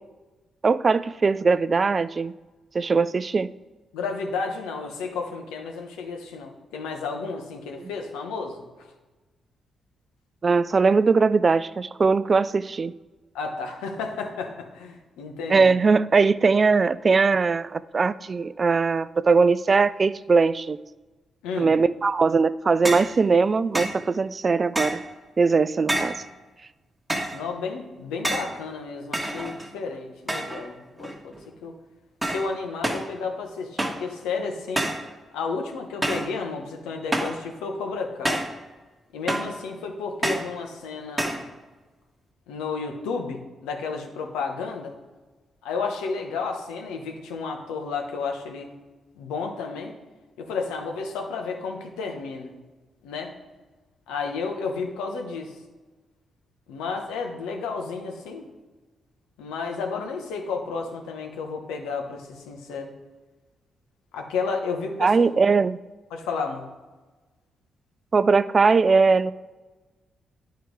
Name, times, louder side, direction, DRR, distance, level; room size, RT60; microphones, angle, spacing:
voice 1, 0.6-2.3 2.7-3.5 7.8-7.9 10.4-12.9 15.5-20.8 21.6-25.0 25.4-26.1 65.0-65.8 68.1-69.3, right 4 dB, 45° right, 16 dB, 0.3 m, -20 dB
voice 2, 3.9-8.9 13.3-15.7 21.4-21.7 27.3-31.7 32.2-34.9 35.3-38.4 39.1-41.5 42.5-44.9 45.6-48.7 49.2-49.9 50.4-52.5 53.0-53.3 54.1-55.6 56.7-58.5 59.4-62.9 64.1-65.1 66.1-66.7, left 4 dB, 90° left, 3 dB, 1.1 m, -32 dB
sound 1, 22.9-23.2 23.7-24.0 24.8-25.1 25.9-26.3 27.1-27.4 28.2-28.6 29.1-29.8 30.3-30.7 31.0-31.4 32.2-32.5 32.8-33.1 33.8-34.1 34.8-35.1 36.0-36.3 37.1-37.4 38.3-38.6 39.3-39.6 40.2-40.5 41.2-41.5, right 1 dB, 15° right, 1.3 m, -28 dB
9.4 x 4.6 x 4.7 m, 1.2 s
supercardioid pair, 50°, 0 cm